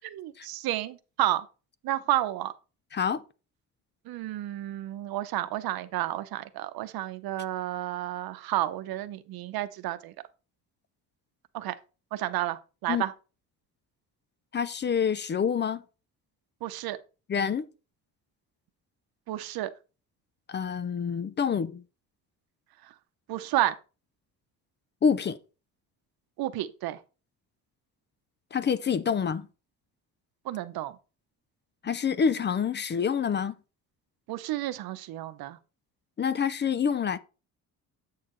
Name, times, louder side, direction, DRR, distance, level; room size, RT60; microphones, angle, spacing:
voice 1, 0.0-1.5 1.8-2.5 4.1-10.1 11.5-11.7 12.1-13.1 16.6-17.0 19.3-19.7 23.3-23.8 26.4-27.0 30.5-30.9 34.3-35.6, right 14 dB, 85° right, 0.8 m, -31 dB
voice 2, 14.5-15.8 17.3-17.7 20.5-21.8 25.0-25.4 28.5-29.5 31.8-33.5 36.2-37.2, left 7 dB, 30° left, 0.5 m, -27 dB
8.3 x 6.6 x 3.1 m
cardioid pair, 120°, 35 cm